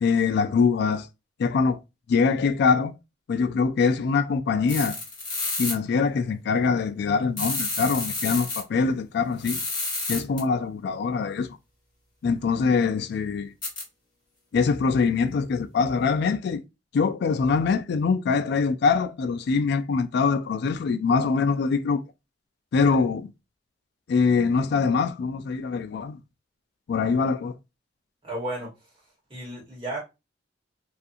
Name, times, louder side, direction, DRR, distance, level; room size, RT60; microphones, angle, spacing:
voice 1, 0.0-1.1 1.4-1.8 2.1-2.9 3.3-5.0 5.6-9.6 10.1-11.6 12.2-13.5 14.5-16.6 16.9-22.0 22.7-23.3 24.1-26.2 26.9-27.5, left 5 dB, 60° left, 0.3 m, -23 dB
sound 1, 4.7-5.7 7.4-8.6 9.4-10.4 13.6-13.8, left 3 dB, 25° left, 1.5 m, -29 dB
voice 2, 28.2-28.7 29.3-30.0, right 1 dB, 25° right, 1.3 m, -33 dB
2.5 x 2.4 x 2.5 m
head